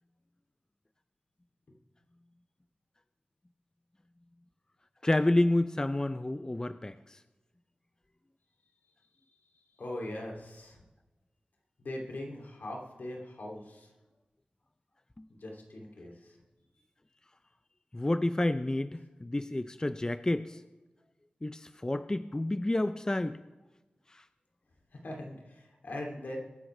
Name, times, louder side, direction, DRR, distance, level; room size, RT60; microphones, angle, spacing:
voice 1, 5.0-7.2 15.2-15.3 17.9-20.6 21.4-23.4 24.1-24.2, left 1 dB, 20° left, 12 dB, 0.5 m, -29 dB
voice 2, 9.8-10.8 11.8-13.9 15.3-16.4 24.9-26.4, left 1 dB, 75° left, -1 dB, 2.8 m, -41 dB
22.0 x 9.8 x 3.3 m, 1.1 s
cardioid pair, 55°, 3 cm